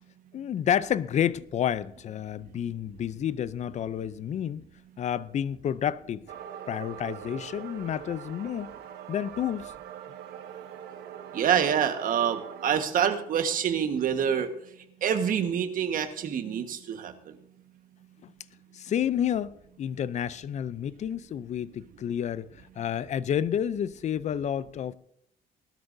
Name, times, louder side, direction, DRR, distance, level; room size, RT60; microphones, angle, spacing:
voice 1, 0.3-4.6 5.0-6.2 6.7-8.7 9.1-9.7 18.2-18.3 18.7-24.9, left 9 dB, 45° left, 0.5 m, -30 dB
sound 1, 6.3-12.9, right 9 dB, 75° right, 1.1 m, -42 dB
voice 2, 11.3-14.5 15.0-17.1, right 8 dB, 55° right, 1.5 m, -26 dB
19.0 x 12.5 x 2.7 m
cardioid pair, 110°, 17 cm